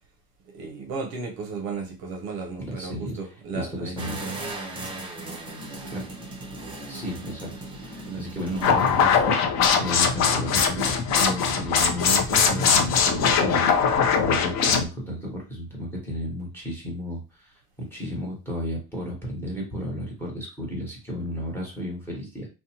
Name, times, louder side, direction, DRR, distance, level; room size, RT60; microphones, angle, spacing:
voice 1, 0.5-4.4 8.1-8.3, right 4 dB, 50° right, 0.6 m, -35 dB
voice 2, 2.6-3.2 3.5-4.2 5.8-6.0 6.9-7.5 7.8-22.5, equal, 5° left, 1.0 m, -33 dB
sound 1, 4.0-9.0, right 2 dB, 10° right, 0.5 m, -37 dB
sound 2, 8.6-14.8, left 6 dB, 40° left, 0.5 m, -21 dB
2.6 x 2.1 x 2.8 m
supercardioid pair, 125°, 44 cm